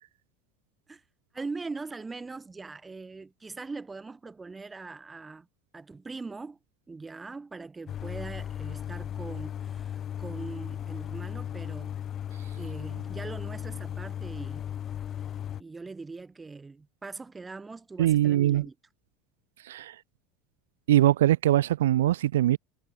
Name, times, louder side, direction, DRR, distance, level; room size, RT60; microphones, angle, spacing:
voice 1, 1.3-5.5 5.7-6.6 6.9-12.0 12.5-14.7 15.1-15.2 15.6-18.8, right 3 dB, 15° right, 2.0 m, -41 dB
sound 1, 7.9-15.6, left 9 dB, 40° left, 1.3 m, -36 dB
voice 2, 18.0-18.6 19.7-19.9 20.9-22.6, right 13 dB, 90° right, 0.5 m, -22 dB
supercardioid pair, 105°, 0 cm